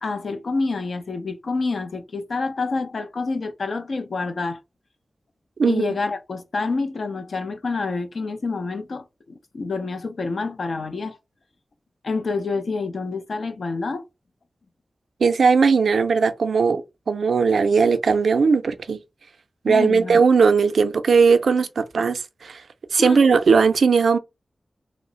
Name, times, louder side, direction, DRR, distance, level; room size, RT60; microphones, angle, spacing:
voice 1, 0.0-4.6 5.7-11.2 12.0-14.0 19.7-20.2 23.0-23.2, left 3 dB, 75° left, 0.6 m, -27 dB
voice 2, 15.2-16.8 17.1-19.0 19.6-22.6 22.9-24.2, right 5 dB, 90° right, 0.4 m, -18 dB
3.0 x 2.0 x 3.7 m
cardioid pair, 45°, 0 cm